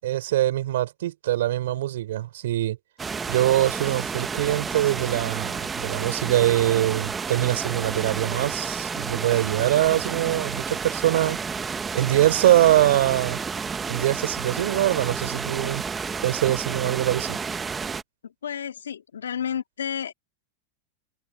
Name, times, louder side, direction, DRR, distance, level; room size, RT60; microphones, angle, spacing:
voice 1, 0.0-2.8 3.3-11.4 11.9-13.4 13.9-15.8 16.2-17.4, right 14 dB, 70° right, 7.1 m, -23 dB
sound 1, 3.0-18.0, right 5 dB, 20° right, 1.3 m, -31 dB
voice 2, 18.4-20.1, left 8 dB, 85° left, 2.4 m, -31 dB
open air
hypercardioid pair, 105°, 0 cm